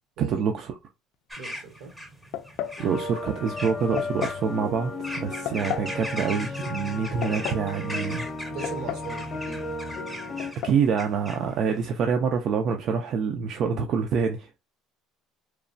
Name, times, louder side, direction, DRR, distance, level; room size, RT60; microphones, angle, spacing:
voice 1, 0.2-0.7 2.8-8.3 10.6-14.5, right 6 dB, 50° right, 0.4 m, -26 dB
sound 1, 1.3-12.0, equal, 5° right, 0.6 m, -40 dB
voice 2, 1.4-1.9 8.5-9.7, right 4 dB, 80° right, 1.2 m, -39 dB
sound 2, 2.3-2.8 4.0-4.4 5.5-5.9 7.0-7.7 8.6-9.2 9.4-9.5 10.4-10.8, left 11 dB, 70° left, 0.4 m, -33 dB
sound 3, 2.8-10.5, left 2 dB, 30° left, 0.7 m, -34 dB
3.0 x 2.1 x 2.6 m
cardioid pair, 130°, 0 cm